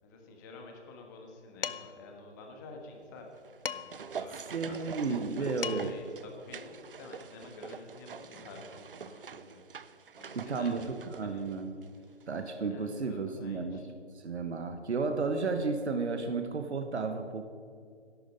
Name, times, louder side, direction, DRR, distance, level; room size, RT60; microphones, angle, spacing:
voice 1, 0.0-3.3 3.7-4.4 4.7-9.6 10.2-11.4 12.0-12.3 12.7-13.9, left 3 dB, 15° left, 2 dB, 1.4 m, -49 dB
Dishes pots and pans, 1.6-2.1 3.7-4.1 5.3-5.4 5.6-6.1, left 7 dB, 50° left, 0.6 m, -37 dB
sound 1, 3.3-12.0 12.2-12.3, right 6 dB, 50° right, 0.6 m, -45 dB
voice 2, 4.5-5.9 10.3-11.7 12.3-13.8 14.1-17.4, right 4 dB, 70° right, 7 dB, 1.3 m, -33 dB
12.5 x 11.5 x 5.4 m, 2.3 s
figure-of-eight pair, 150°, 35 cm